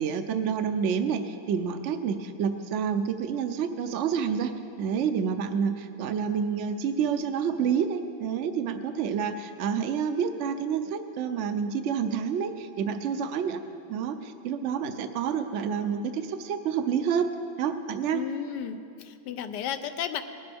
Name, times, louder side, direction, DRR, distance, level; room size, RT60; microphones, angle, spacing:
voice 1, 0.0-4.5 4.8-13.6 13.9-17.3 17.6-18.2, right 7 dB, 85° right, 8 dB, 0.6 m, -28 dB
voice 2, 18.1-20.2, left 9 dB, 75° left, 8 dB, 1.2 m, -33 dB
19.5 x 11.0 x 3.5 m, 2.5 s
omnidirectional pair, 1.9 m